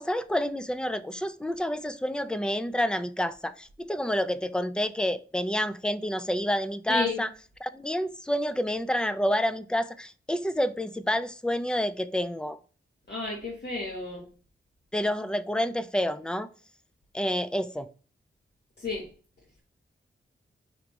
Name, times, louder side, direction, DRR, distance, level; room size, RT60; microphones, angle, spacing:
voice 1, 0.0-7.3 7.6-12.6 14.9-16.5 17.1-17.9, equal, 5° left, 0.3 m, -28 dB
voice 2, 6.9-7.2 13.1-14.3 18.8-19.0, left 3 dB, 55° left, 1.2 m, -32 dB
5.0 x 3.4 x 3.0 m
wide cardioid pair, 115°, 20 cm